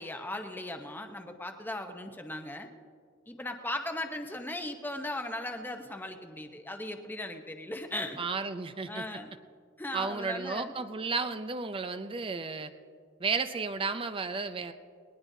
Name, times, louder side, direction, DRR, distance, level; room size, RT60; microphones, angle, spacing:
voice 1, 0.0-2.7 3.3-8.2 8.9-9.3 9.8-10.7, left 1 dB, 10° left, 5 dB, 0.8 m, -38 dB
voice 2, 8.2-9.1 9.9-12.7 13.2-14.7, right 4 dB, 25° right, 10 dB, 0.5 m, -33 dB
20.0 x 19.0 x 2.7 m, 2.1 s
head